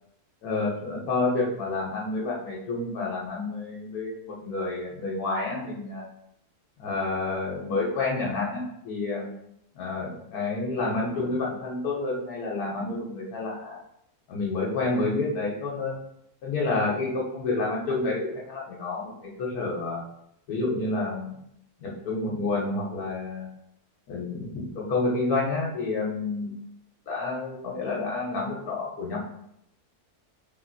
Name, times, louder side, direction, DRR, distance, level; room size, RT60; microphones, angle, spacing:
voice 1, 0.4-6.0 6.8-9.3 9.7-13.8 14.3-15.9 16.4-20.0 20.5-21.4 21.8-23.5 24.1-26.5 27.1-29.2, left 3 dB, 70° left, -3 dB, 1.2 m, -29 dB
3.5 x 2.5 x 2.5 m, 0.75 s
omnidirectional pair, 1.7 m